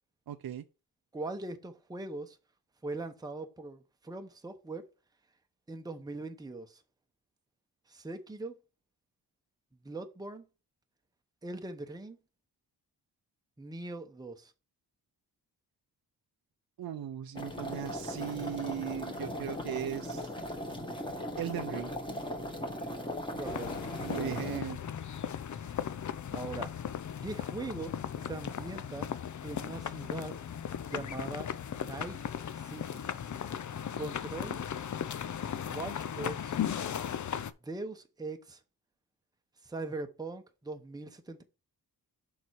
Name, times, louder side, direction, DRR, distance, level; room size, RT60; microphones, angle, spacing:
voice 1, 0.3-0.6 16.8-20.3 21.4-21.9 24.0-24.8, right 10 dB, 65° right, 0.6 m, -37 dB
voice 2, 1.1-2.4 2.8-4.9 5.7-6.8 7.9-8.5 9.8-10.4 11.4-12.2 13.6-14.5 23.4-23.7 24.1-24.4 25.5-25.8 26.3-26.7 27.2-27.9 28.2-29.1 29.4-30.3 30.8-32.2 32.5-33.0 34.0-34.6 35.7-36.6 37.6-38.6 39.6-41.4, right 2 dB, 10° right, 0.9 m, -41 dB
sound 1, 17.4-24.6, equal, 10° left, 1.7 m, -38 dB
sound 2, 23.4-37.5, left 8 dB, 50° left, 0.6 m, -37 dB
6.8 x 4.8 x 4.7 m
wide cardioid pair, 120°, 39 cm